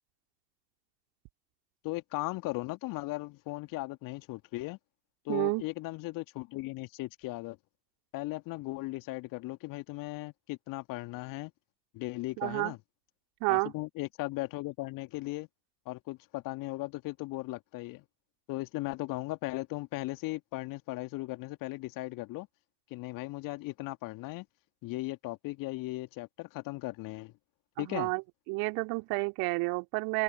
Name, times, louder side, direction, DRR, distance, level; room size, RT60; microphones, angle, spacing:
voice 1, 1.8-4.8 5.3-7.6 8.1-11.5 11.9-12.8 13.5-15.5 15.9-18.0 18.5-22.5 22.9-24.5 24.8-27.3 27.8-28.1, left 20 dB, 40° left, 2.2 m, -37 dB
voice 2, 5.3-5.6 12.4-12.7 13.4-13.7 27.8-28.2 28.5-30.2, right 29 dB, 50° right, 2.8 m, -30 dB
open air
figure-of-eight pair, 85°, 48 cm